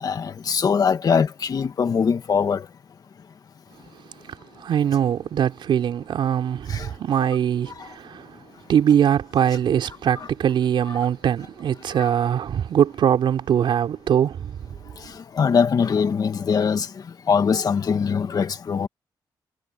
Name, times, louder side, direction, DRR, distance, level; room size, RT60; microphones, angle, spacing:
voice 1, 0.0-2.7 6.7-6.9 7.8-7.9 15.1-16.9 17.3-18.9, left 6 dB, 50° left, 2.0 m, -22 dB
voice 2, 4.2-8.3 8.7-14.7, right 9 dB, 80° right, 4.5 m, -22 dB
wide cardioid pair, 125°, 8 cm